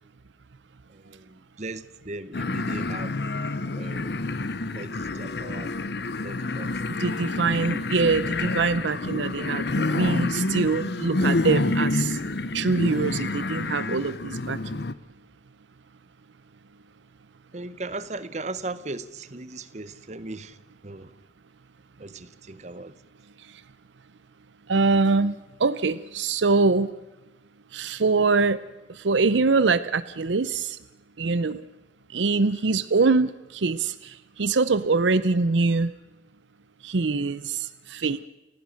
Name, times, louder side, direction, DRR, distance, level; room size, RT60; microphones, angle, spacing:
voice 1, 0.9-3.2 3.8-4.3 4.7-5.7 6.2-7.0 17.5-21.2 22.0-23.0, right 2 dB, 40° right, 0.9 m, -38 dB
sound 1, 2.3-14.9, left 2 dB, 65° left, 0.9 m, -28 dB
voice 2, 7.0-12.2 12.5-14.6 24.7-25.3 25.6-26.9 27.7-28.6 28.9-30.8 31.2-31.6 32.1-35.9 36.8-38.3, right 4 dB, 80° right, 0.7 m, -23 dB
29.5 x 16.0 x 6.5 m
head